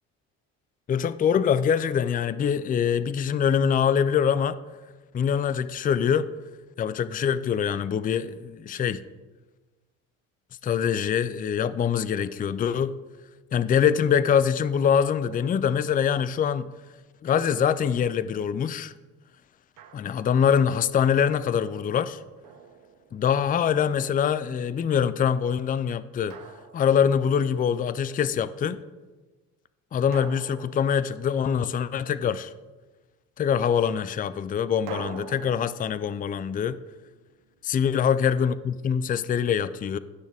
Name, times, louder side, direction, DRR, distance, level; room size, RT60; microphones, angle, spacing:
voice 1, 0.9-4.6 5.1-6.3 6.8-9.0 10.6-13.0 13.5-16.7 17.2-18.9 19.9-22.2 23.1-26.4 26.7-28.8 29.9-32.5 33.4-36.8 37.6-40.0, left 8 dB, 20° left, 15 dB, 0.4 m, -24 dB
Drum, 19.8-20.4 22.4-23.5 26.3-27.5 30.1-31.8 34.9-37.8, right 6 dB, 55° right, 1.3 m, -45 dB
16.0 x 6.3 x 3.5 m, 1.3 s
hypercardioid pair, 70°, 39 cm